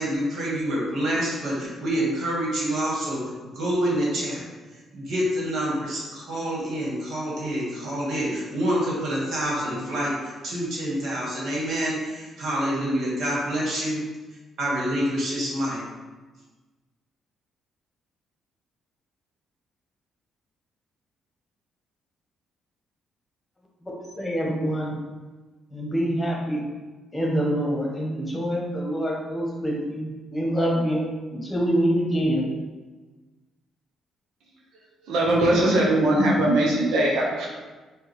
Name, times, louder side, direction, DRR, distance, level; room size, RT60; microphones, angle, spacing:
voice 1, 0.0-3.2 3.5-4.4 4.9-14.0 14.6-15.8, equal, 65° right, -5 dB, 1.5 m, -27 dB
voice 2, 24.2-24.9 25.7-26.6 27.1-31.0 31.3-32.5, equal, 15° left, -2 dB, 1.1 m, -25 dB
voice 3, 34.7-37.5, right 1 dB, 85° right, -2 dB, 0.7 m, -21 dB
4.7 x 2.3 x 3.4 m, 1.3 s
cardioid pair, 90°, 0 cm